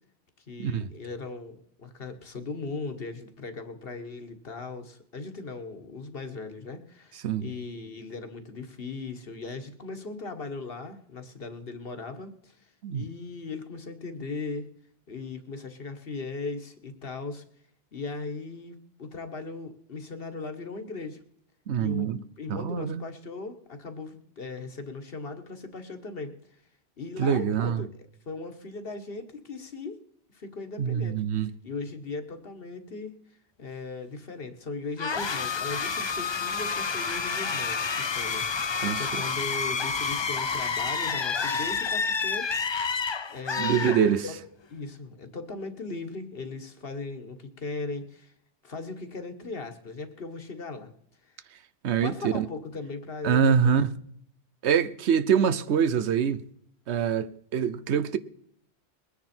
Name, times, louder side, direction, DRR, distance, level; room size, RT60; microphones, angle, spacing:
voice 1, 0.5-14.7 15.1-17.4 17.9-21.2 21.8-22.1 22.4-26.4 27.0-27.9 28.2-30.0 30.3-31.3 31.6-33.2 33.6-42.8 43.3-44.0 44.7-48.3 48.6-50.9 51.2-51.4 52.0-53.8, left 3 dB, 60° left, 1.5 m, -38 dB
voice 2, 21.7-22.2 22.5-23.0 27.2-27.9 30.8-31.5 38.8-39.0 43.6-44.3 51.8-52.5 53.2-53.9 54.6-56.4 56.9-58.2, right 7 dB, 80° right, 1.0 m, -25 dB
sound 1, 35.0-44.5, left 5 dB, 35° left, 0.5 m, -29 dB
21.0 x 9.8 x 4.4 m
omnidirectional pair, 1.1 m